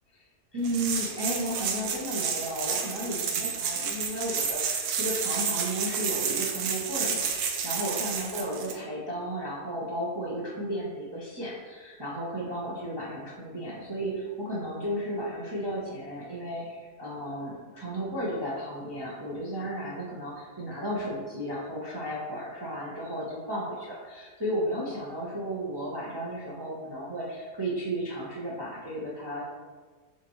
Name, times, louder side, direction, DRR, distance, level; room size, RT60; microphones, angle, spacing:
voice 1, 0.5-29.4, equal, 25° right, -6 dB, 0.5 m, -34 dB
sound 1, 0.6-8.7, right 6 dB, 75° right, 1.1 m, -30 dB
6.8 x 2.6 x 3.0 m, 1.4 s
omnidirectional pair, 1.7 m